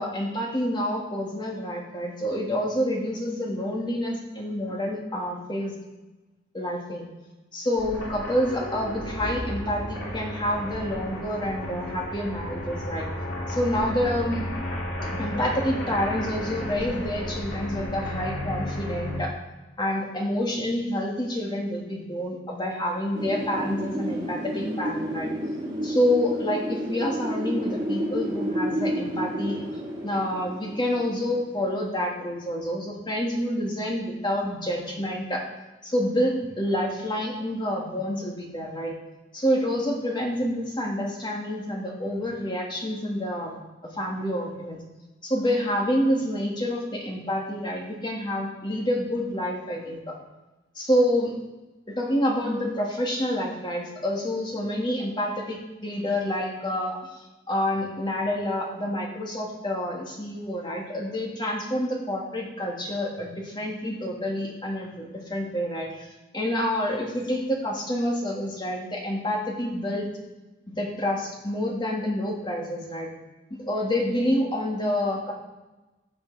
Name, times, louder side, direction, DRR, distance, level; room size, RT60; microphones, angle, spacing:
voice 1, 0.0-5.7 6.5-7.0 7.5-13.1 13.5-14.5 15.2-19.3 19.8-25.3 25.8-29.6 30.0-35.4 35.8-38.9 39.3-43.6 43.8-44.8 45.2-50.2 50.8-51.3 51.9-66.1 66.3-70.1 70.7-73.1 73.5-75.3, equal, 25° left, -1 dB, 1.9 m, -28 dB
sound 1, 7.8-19.2, left 1 dB, 85° left, 2.9 m, -33 dB
Wind, 23.2-31.9, equal, 25° right, 3.2 m, -31 dB
15.0 x 5.6 x 4.0 m, 1.1 s
head